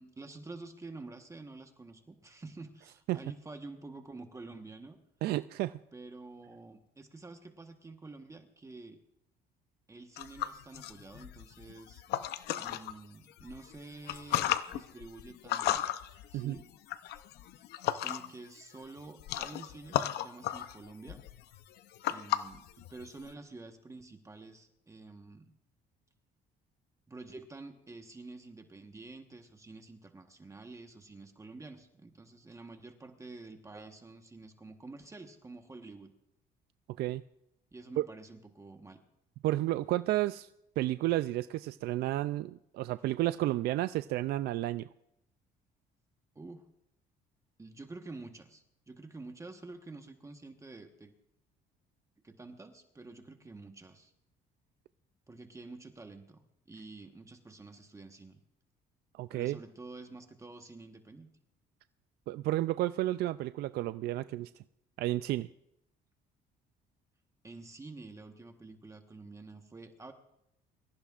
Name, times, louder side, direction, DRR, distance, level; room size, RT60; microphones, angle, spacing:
voice 1, 0.0-5.0 5.9-9.0 9.9-12.0 12.6-15.9 16.3-16.6 18.0-21.2 22.1-25.5 27.1-36.1 37.7-39.0 46.3-46.6 47.6-51.1 52.2-54.1 55.3-58.4 59.3-61.3 67.4-70.1, right 3 dB, 20° right, 5 dB, 1.2 m, -49 dB
voice 2, 5.2-5.8 16.3-16.6 37.0-37.2 38.0-38.1 39.4-40.5 40.8-44.9 59.1-59.6 62.3-64.5 65.0-65.5, right 15 dB, 70° right, 13 dB, 0.4 m, -31 dB
sound 1, 10.2-12.9 13.4-18.5 18.7-23.3, left 12 dB, 75° left, 0.7 m, -35 dB
24.5 x 15.0 x 2.5 m, 0.81 s
cardioid pair, 110°, 17 cm